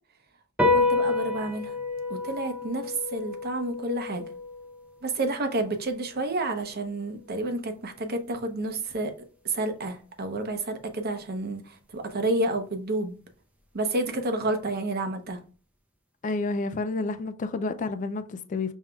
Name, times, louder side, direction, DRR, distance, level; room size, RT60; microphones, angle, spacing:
sound 1, 0.6-7.3, left 3 dB, 5° right, 0.6 m, -30 dB
voice 1, 0.6-1.8 2.1-4.2 5.0-9.1 9.4-13.2 13.7-15.4, right 2 dB, 50° right, 0.8 m, -30 dB
voice 2, 16.2-18.7, left 3 dB, 35° left, 0.3 m, -30 dB
5.3 x 3.5 x 2.2 m
head